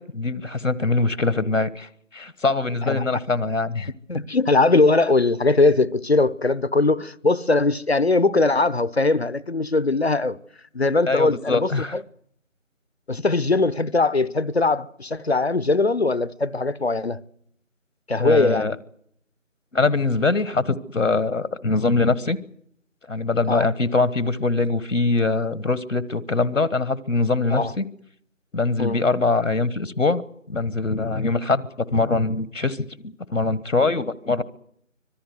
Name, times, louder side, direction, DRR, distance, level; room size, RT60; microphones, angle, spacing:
voice 1, 0.0-3.9 11.1-11.9 18.2-18.7 19.7-22.4 23.1-27.8 28.5-30.2 30.5-34.4, left 3 dB, 70° left, 1.3 m, -23 dB
voice 2, 4.1-10.4 10.7-12.0 13.1-17.2 18.1-18.8 23.5-23.7 27.5-27.7 28.8-29.0, left 3 dB, 50° left, 0.9 m, -20 dB
25.0 x 19.0 x 7.9 m
figure-of-eight pair, 175°, 40 cm